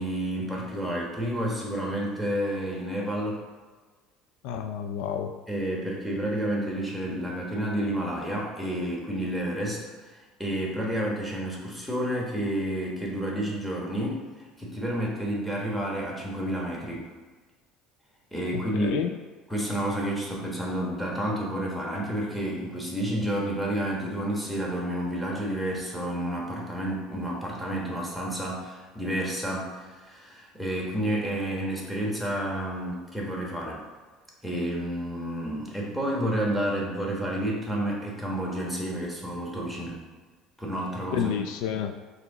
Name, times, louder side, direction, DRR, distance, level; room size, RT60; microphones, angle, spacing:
voice 1, 0.0-3.4 5.5-17.1 18.3-18.9 19.5-33.8 34.4-40.0 40.6-41.3, right 1 dB, ahead, -3 dB, 1.1 m, -30 dB
voice 2, 4.4-5.3 18.5-19.1 41.1-41.9, left 8 dB, 75° left, 7 dB, 0.3 m, -30 dB
4.8 x 2.7 x 3.9 m, 1.3 s
cardioid pair, 120°, 0 cm